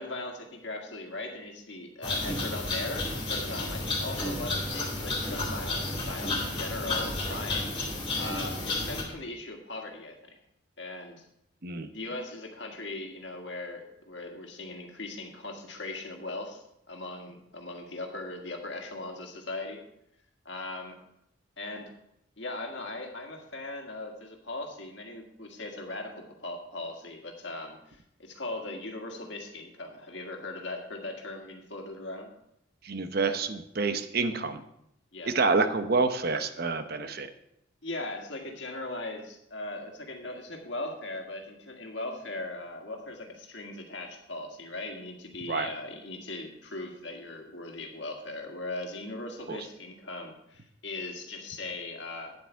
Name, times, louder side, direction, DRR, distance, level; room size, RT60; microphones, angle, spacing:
voice 1, 0.0-10.4 10.8-11.3 11.9-19.8 20.4-21.0 21.6-21.9 22.4-32.3 35.1-35.3 37.8-52.3, left 2 dB, 65° left, 2 dB, 1.7 m, -39 dB
sound 1, 2.0-9.0, left 2 dB, 25° left, 2.7 m, -32 dB
voice 2, 32.8-34.6 35.3-37.3 45.5-45.7 49.5-49.6, right 4 dB, 50° right, 9 dB, 0.8 m, -28 dB
9.7 x 8.0 x 4.6 m, 0.79 s
head